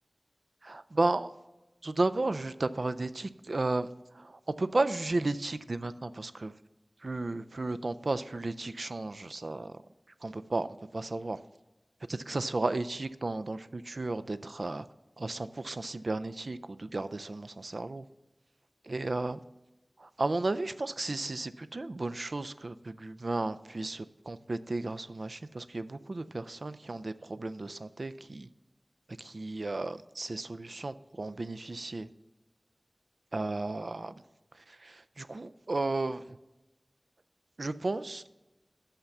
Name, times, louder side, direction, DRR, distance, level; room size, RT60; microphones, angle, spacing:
voice 1, 0.6-1.3 1.8-3.9 4.2-4.3 4.6-6.5 7.0-9.7 10.2-10.7 10.9-11.4 12.1-14.8 15.2-18.0 18.9-19.4 20.0-28.5 29.2-32.1 33.3-34.1 34.8-36.2 37.6-38.2, right 2 dB, 75° right, 12 dB, 0.4 m, -33 dB
6.6 x 5.7 x 7.0 m, 1.0 s
wide cardioid pair, 40°, 0 cm